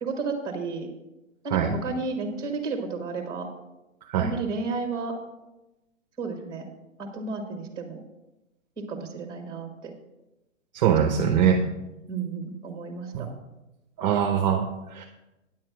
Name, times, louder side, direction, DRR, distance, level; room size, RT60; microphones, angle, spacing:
voice 1, 0.0-0.9 1.4-3.5 4.2-5.1 6.2-6.7 7.0-8.0 8.8-9.9 12.1-13.3, right 4 dB, 10° right, 4 dB, 1.5 m, -32 dB
voice 2, 10.7-11.6 13.1-13.3 14.0-15.0, right 8 dB, 35° right, 3 dB, 0.7 m, -23 dB
9.5 x 7.6 x 4.7 m, 0.99 s
hypercardioid pair, 155°, 39 cm